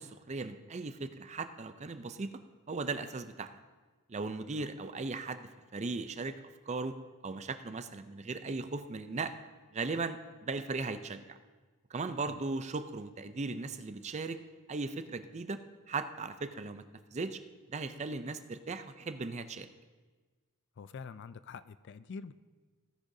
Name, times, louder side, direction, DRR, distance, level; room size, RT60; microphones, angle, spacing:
voice 1, 0.0-2.3 2.7-3.5 4.1-6.4 6.7-7.0 7.2-9.3 9.7-11.4 11.9-14.4 14.7-15.6 15.9-16.8 17.1-17.4 17.7-19.7, right 3 dB, 30° right, 10 dB, 0.5 m, -37 dB
voice 2, 20.8-22.3, left 5 dB, 55° left, 15 dB, 0.4 m, -45 dB
17.0 x 10.0 x 2.7 m, 1.3 s
head